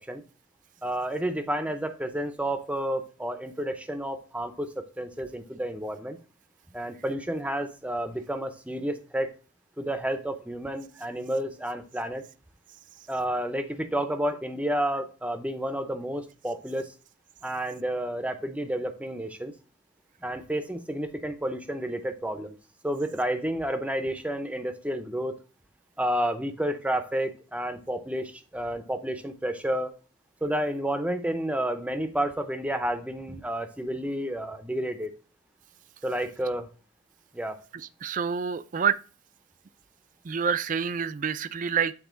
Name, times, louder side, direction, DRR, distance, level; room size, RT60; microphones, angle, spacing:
voice 1, 0.8-4.7 5.0-6.2 6.7-9.3 9.8-12.2 13.1-16.9 17.4-19.5 20.2-22.6 22.8-25.3 26.0-29.9 30.4-35.1 36.0-36.7 37.3-37.6, right 1 dB, 5° right, 0.7 m, -30 dB
voice 2, 38.0-39.0 40.2-41.9, right 7 dB, 45° right, 0.4 m, -27 dB
8.2 x 3.7 x 3.8 m
head